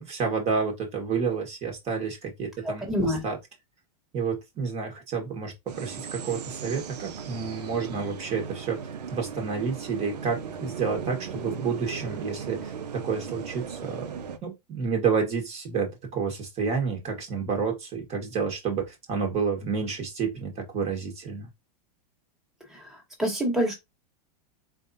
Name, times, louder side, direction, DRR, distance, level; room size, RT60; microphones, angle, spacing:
voice 1, 0.0-3.4 4.1-8.8 9.1-14.1 14.4-21.5, right 5 dB, 35° right, 1.5 m, -30 dB
voice 2, 2.6-3.2 22.7-22.9 23.2-23.7, equal, ahead, 1.5 m, -26 dB
sound 1, 5.7-14.4, right 7 dB, 85° right, 0.8 m, -37 dB
4.0 x 3.5 x 2.7 m
hypercardioid pair, 120°, 20 cm